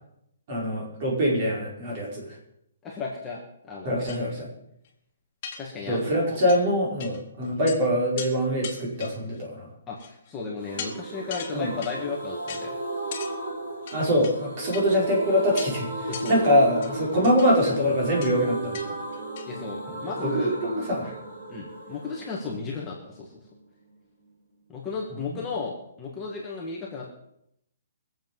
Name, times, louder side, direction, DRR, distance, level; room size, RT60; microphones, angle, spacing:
voice 1, 0.5-2.2 3.8-4.5 5.9-9.7 11.5-11.7 13.9-18.9 20.2-21.1 25.3-25.4, equal, 30° right, -3 dB, 5.2 m, -24 dB
voice 2, 2.8-4.1 5.6-6.4 9.9-12.7 16.1-16.5 19.5-20.5 21.5-23.3 24.7-27.1, left 4 dB, 10° left, -4 dB, 1.7 m, -34 dB
sound 1, 4.1-4.2 4.8-4.9 5.4-6.1 6.5-6.6 7.0-7.2 7.4-7.8 8.2-8.3 8.6-9.4 10.0-10.3 10.8-10.9 11.3-12.0 12.5-12.6 13.1-13.3 13.9-14.3 14.7-14.9 15.6-15.7 16.1-16.4 16.8-17.5 18.2-18.3 18.7-18.9 19.1-19.5, left 6 dB, 35° left, 2.1 m, -38 dB
sound 2, 10.6-24.2 24.5-24.6 24.8-24.9, right 2 dB, 55° right, 7.1 m, -35 dB
22.0 x 7.9 x 5.4 m, 0.75 s
hypercardioid pair, 170°, 0 cm